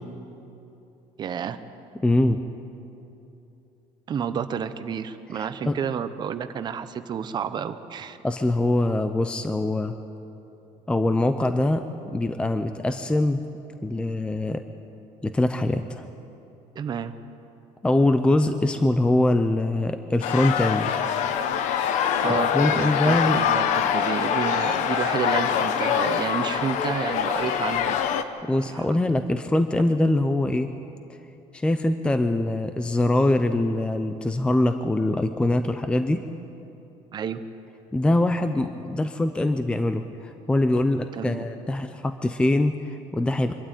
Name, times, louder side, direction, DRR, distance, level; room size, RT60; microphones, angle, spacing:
voice 1, 1.2-1.6 4.1-8.2 16.7-17.2 22.2-23.6 23.9-28.0 28.5-28.9 37.1-37.4 41.1-41.4, right 7 dB, 35° right, 11 dB, 0.8 m, -30 dB
voice 2, 2.0-2.4 5.3-5.8 8.2-9.9 10.9-13.4 13.8-14.6 15.2-16.1 17.8-21.0 22.3-23.4 28.4-30.7 31.5-36.2 37.9-43.5, left 1 dB, 10° left, 9 dB, 0.5 m, -23 dB
sound 1, 20.2-28.2, left 8 dB, 65° left, 1.0 m, -24 dB
24.5 x 12.5 x 9.1 m, 2.9 s
cardioid pair, 165°, 13 cm